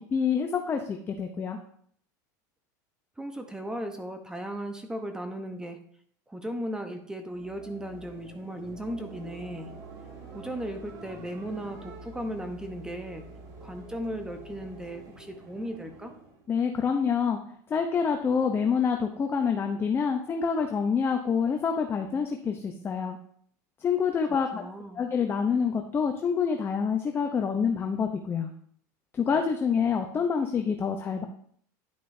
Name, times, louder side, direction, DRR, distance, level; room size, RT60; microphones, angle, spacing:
voice 1, 0.1-1.6 16.5-17.4 17.7-23.2 23.8-24.6 25.0-28.5 29.1-31.3, left 6 dB, 25° left, 4 dB, 0.7 m, -27 dB
voice 2, 3.2-5.8 6.3-9.7 10.3-13.2 13.6-16.1 24.5-25.0, equal, 5° right, 5 dB, 0.9 m, -36 dB
sound 1, 7.1-16.5, right 3 dB, 40° right, 1.9 m, -46 dB
10.5 x 6.2 x 2.7 m, 0.62 s
supercardioid pair, 120°, 10 cm